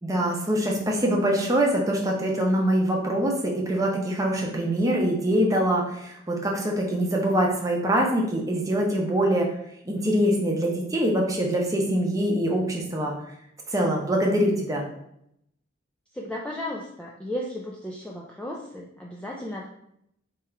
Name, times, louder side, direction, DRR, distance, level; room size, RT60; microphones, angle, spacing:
voice 1, 0.0-9.5 9.8-13.1 13.7-14.8, right 1 dB, 15° right, -1 dB, 0.7 m, -24 dB
voice 2, 16.1-19.7, left 1 dB, 5° left, -3 dB, 0.3 m, -34 dB
3.6 x 3.0 x 4.4 m, 0.76 s
head